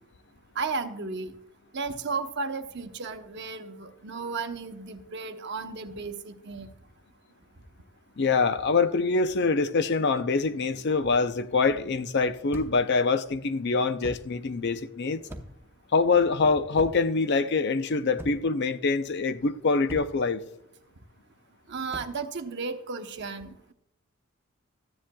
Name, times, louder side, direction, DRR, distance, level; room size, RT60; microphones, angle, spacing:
voice 1, 0.6-1.3 1.7-6.7 21.7-23.7, right 4 dB, 50° right, 0.8 m, -34 dB
voice 2, 8.2-15.2 15.9-20.4, left 4 dB, 50° left, 0.5 m, -25 dB
sound 1, 12.5-12.9 14.0-14.3 15.3-15.7 16.8-17.2 18.2-18.6 19.9-20.3 21.9-22.2, equal, 10° right, 0.8 m, -41 dB
14.0 x 10.0 x 2.3 m
head